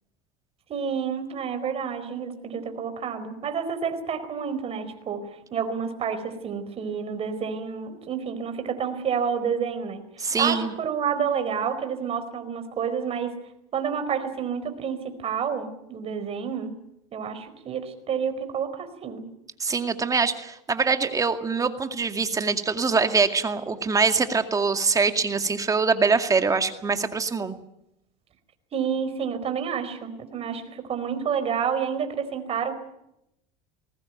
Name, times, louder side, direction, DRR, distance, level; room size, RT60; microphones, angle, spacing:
voice 1, 0.7-5.2 5.5-10.0 10.4-13.3 13.7-16.7 17.1-19.2 28.7-32.7, right 7 dB, 35° right, 8 dB, 4.6 m, -29 dB
voice 2, 10.2-10.7 19.6-27.5, right 4 dB, 20° right, 8 dB, 2.2 m, -24 dB
21.0 x 19.0 x 9.3 m, 0.82 s
supercardioid pair, 105°, 16 cm